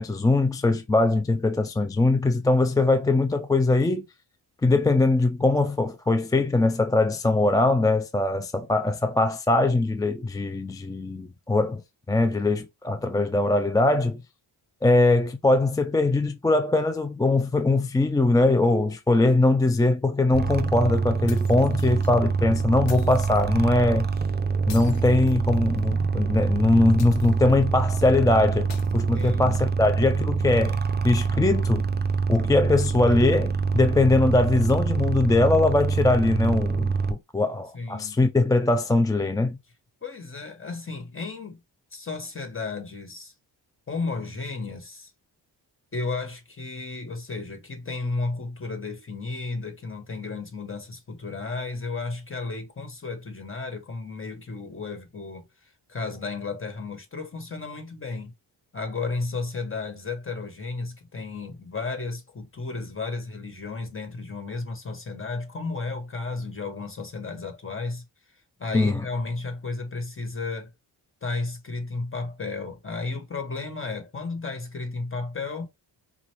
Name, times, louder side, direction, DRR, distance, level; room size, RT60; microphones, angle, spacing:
voice 1, 0.0-4.1 4.6-11.8 12.1-14.2 14.8-24.1 24.7-28.7 28.9-30.8 31.0-31.8 32.3-39.6 68.7-69.0, left 2 dB, 10° left, 0.3 m, -21 dB
sound 1, 20.3-37.1, right 5 dB, 25° right, 0.6 m, -25 dB
sound 2, 21.3-22.1 22.9-23.5 24.7-25.9 27.0-27.6 28.7-29.6, left 8 dB, 85° left, 1.0 m, -47 dB
voice 2, 29.1-29.6 37.7-38.2 40.0-41.6 41.9-43.3 43.9-45.1 45.9-55.4 55.9-58.3 58.7-68.0 68.6-70.7 71.2-75.7, left 3 dB, 30° left, 1.6 m, -33 dB
5.1 x 2.4 x 3.0 m
cardioid pair, 85°, 43 cm